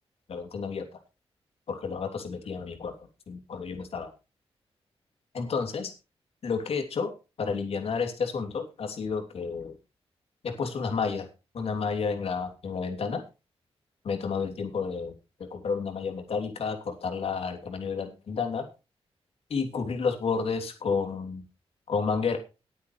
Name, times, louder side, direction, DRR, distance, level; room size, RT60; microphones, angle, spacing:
voice 1, 0.3-0.8 1.7-2.9 3.3-4.1 5.3-5.9 6.4-7.1 7.4-9.8 10.4-11.3 11.5-13.2 14.0-15.1 15.5-18.7 19.5-21.4 21.9-22.4, left 5 dB, 70° left, 4 dB, 3.1 m, -30 dB
20.0 x 8.4 x 3.3 m, 0.30 s
wide cardioid pair, 155°, 11 cm